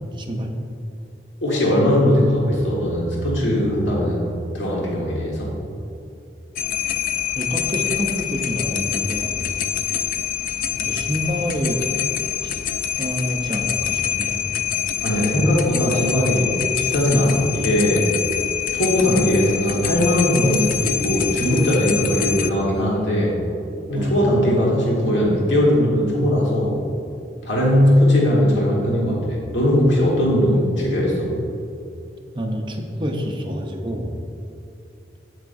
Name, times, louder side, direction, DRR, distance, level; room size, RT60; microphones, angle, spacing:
voice 1, 0.1-0.5 7.3-9.4 10.8-11.8 12.4-12.6 13.0-14.4 24.0-24.1 32.3-34.2, equal, 25° right, 2 dB, 0.7 m, -27 dB
voice 2, 1.4-5.5 15.0-18.1 18.7-23.3 23.9-26.8 27.4-31.3, equal, 90° left, -4 dB, 1.5 m, -19 dB
sound 1, 6.6-22.5, left 10 dB, 50° left, 0.3 m, -25 dB
8.2 x 7.9 x 2.6 m, 2.7 s
head